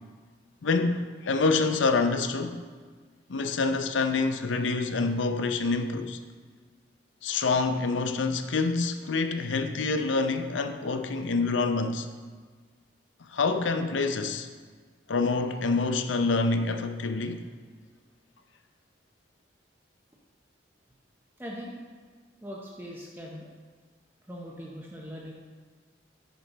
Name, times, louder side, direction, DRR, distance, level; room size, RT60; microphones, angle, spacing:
voice 1, 0.6-2.6 3.3-6.2 7.2-12.1 13.3-14.5 15.1-17.5, left 3 dB, 85° left, 0.6 m, -27 dB
voice 2, 21.4-21.7 22.4-23.5 24.3-25.3, equal, 10° right, 0.7 m, -40 dB
8.9 x 5.4 x 4.1 m
head